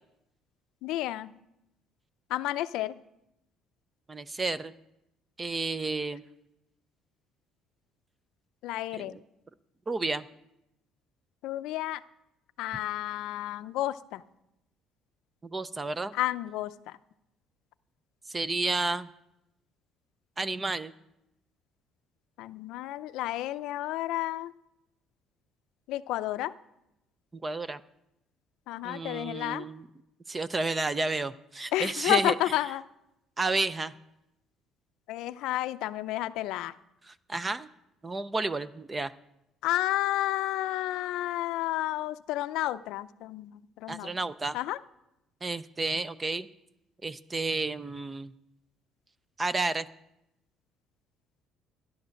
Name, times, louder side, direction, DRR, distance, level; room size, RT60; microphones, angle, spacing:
voice 1, 0.8-1.3 2.3-2.9 8.6-9.1 11.4-12.0 12.6-14.2 16.1-16.7 22.4-24.5 25.9-26.5 28.7-29.6 31.7-32.8 35.1-36.7 39.6-44.1 44.5-44.8, left 15 dB, 70° left, 13 dB, 0.5 m, -31 dB
voice 2, 4.1-4.7 5.4-6.2 8.9-9.2 9.9-10.3 15.4-16.1 18.3-19.1 20.4-20.9 27.4-27.8 28.8-29.9 30.3-32.6 33.4-33.9 37.1-37.7 38.0-39.1 43.9-44.6 45.4-46.5 47.0-48.3 49.4-49.9, right 3 dB, 15° right, 16 dB, 0.4 m, -31 dB
13.5 x 10.5 x 6.3 m, 0.87 s
cardioid pair, 170°, 0 cm